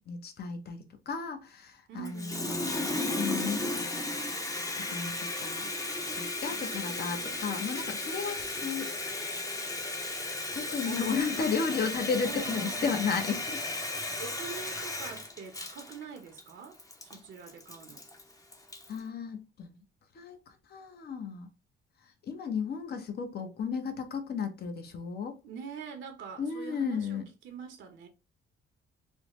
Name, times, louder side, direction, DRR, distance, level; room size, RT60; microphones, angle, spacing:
voice 1, 0.0-4.4 4.8-5.7 6.1-8.9 10.5-13.6 14.6-14.8 18.9-19.8 20.1-21.5 22.0-25.4 26.4-27.2, left 6 dB, 55° left, 0.7 m, -34 dB
voice 2, 1.9-2.7 6.5-7.4 10.8-11.5 12.2-13.1 14.2-18.0 25.4-28.1, right 6 dB, 70° right, 0.7 m, -44 dB
Water tap faucet, 2.0-19.0, left 2 dB, 15° left, 0.6 m, -35 dB
3.3 x 2.0 x 3.0 m
cardioid pair, 90°, 20 cm